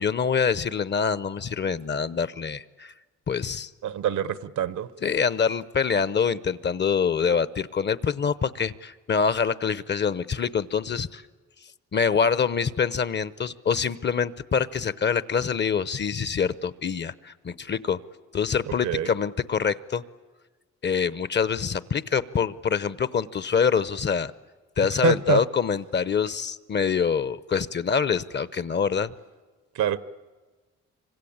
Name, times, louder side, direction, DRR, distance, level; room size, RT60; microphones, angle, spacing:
voice 1, 0.0-2.9 3.3-3.7 5.0-11.2 11.9-18.0 18.3-20.0 20.8-24.3 24.8-29.1, left 6 dB, 35° left, 17 dB, 0.8 m, -25 dB
voice 2, 3.8-4.9 18.7-19.1 25.0-25.4 29.7-30.0, right 10 dB, 70° right, 15 dB, 1.0 m, -25 dB
26.0 x 25.0 x 8.7 m, 1.3 s
cardioid pair, 90°, 30 cm